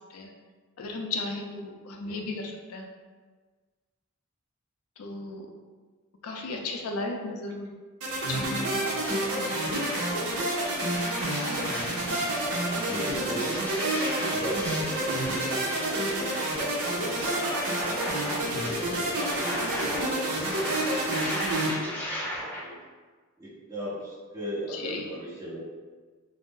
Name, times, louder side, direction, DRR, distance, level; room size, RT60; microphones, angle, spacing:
voice 1, 0.8-2.9 5.0-5.5 6.2-7.7 8.3-9.8 24.7-25.0, left 3 dB, 80° left, 2 dB, 0.4 m, -35 dB
sound 1, 8.0-21.7, right 1 dB, 75° right, 0.6 m, -29 dB
sound 2, 9.0-9.1 9.6-22.6, equal, 10° left, 0.5 m, -36 dB
voice 2, 12.7-16.4 16.7-22.7 23.4-25.6, right 1 dB, 15° right, -9 dB, 0.9 m, -38 dB
2.5 x 2.0 x 3.6 m, 1.4 s
head